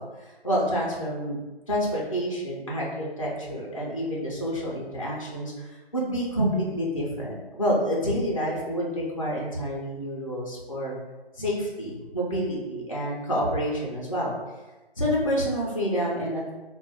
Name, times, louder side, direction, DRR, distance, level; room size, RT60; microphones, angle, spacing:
voice 1, 0.0-1.4 1.7-11.0 11.4-14.3 15.0-16.5, equal, 35° left, -4 dB, 0.4 m, -28 dB
2.2 x 2.1 x 3.3 m, 1.1 s
figure-of-eight pair, 155°, 31 cm